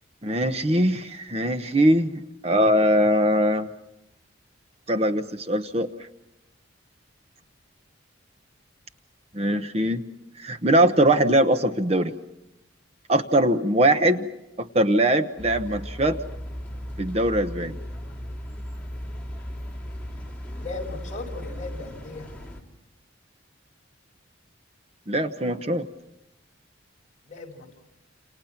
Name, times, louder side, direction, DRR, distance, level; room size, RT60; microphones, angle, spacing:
voice 1, 0.2-3.7 4.9-5.9 9.3-10.0 10.4-12.1 13.1-14.3 14.6-16.2 17.0-17.8 25.1-25.9, right 1 dB, 30° right, 9 dB, 1.0 m, -21 dB
sound 1, 15.4-22.6, equal, 5° left, 2.9 m, -36 dB
voice 2, 20.6-22.3 27.3-27.7, left 3 dB, 35° left, 0 dB, 5.7 m, -37 dB
29.0 x 28.5 x 5.9 m, 0.91 s
head